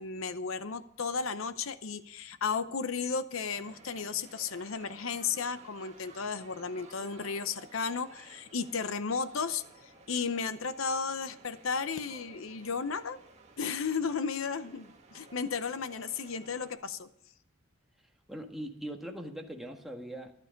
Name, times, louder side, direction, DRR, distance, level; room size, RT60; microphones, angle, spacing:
voice 1, 0.0-13.2 13.6-17.1, left 5 dB, 75° left, 12 dB, 0.8 m, -34 dB
sound 1, 3.4-16.8, right 3 dB, 35° right, 2.2 m, -56 dB
voice 2, 18.3-20.3, right 1 dB, ahead, 1 dB, 1.5 m, -41 dB
14.0 x 12.0 x 5.2 m, 0.73 s
head